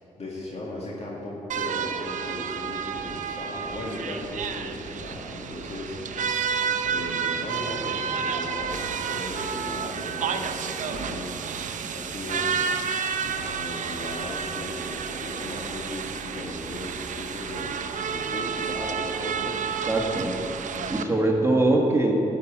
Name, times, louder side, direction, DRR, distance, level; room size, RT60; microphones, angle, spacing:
voice 1, 0.2-6.4 6.8-11.3 11.9-12.8 13.2-17.8 18.1-19.7 20.7-21.2, left 1 dB, 50° left, -4 dB, 2.0 m, -37 dB
sound 1, 1.5-21.0, right 6 dB, 70° right, 0.7 m, -30 dB
voice 2, 19.9-20.4 20.9-22.1, right 2 dB, 20° right, 0 dB, 1.7 m, -22 dB
11.5 x 6.0 x 8.7 m, 3.0 s
cardioid pair, 60°, 13 cm